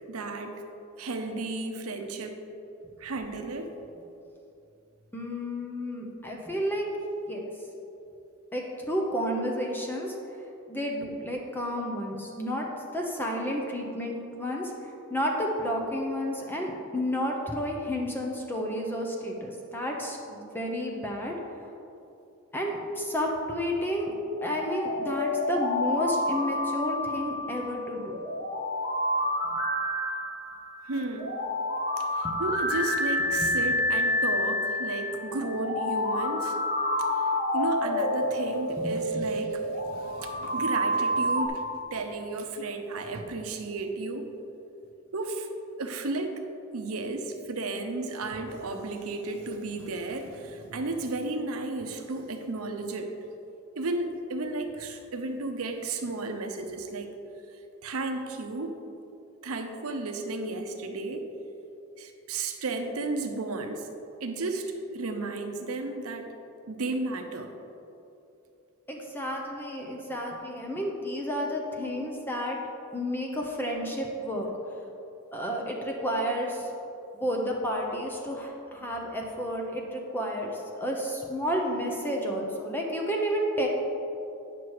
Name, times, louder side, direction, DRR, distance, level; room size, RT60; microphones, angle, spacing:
voice 1, 0.1-0.6 1.0-2.4 3.0-3.7 30.8-31.4 32.0-36.6 37.0-41.6 41.9-44.3 45.1-45.5 45.8-46.4 46.7-53.1 53.8-57.1 57.5-58.7 59.4-61.3 62.0-63.9 64.2-66.3 66.7-67.5, right 2 dB, 80° right, 5 dB, 0.8 m, -33 dB
voice 2, 5.1-6.9 7.3-7.4 8.5-10.2 10.7-12.7 12.9-21.3 22.5-24.1 24.4-28.2 29.5-29.6 32.2-32.4 33.4-33.5 38.8-39.3 68.9-72.6 72.9-74.5 75.3-76.7 77.1-83.7, equal, 10° left, 0 dB, 0.8 m, -31 dB
sound 1, 24.3-41.5, left 1 dB, 45° left, 1.6 m, -29 dB
9.3 x 6.0 x 4.8 m, 2.8 s
head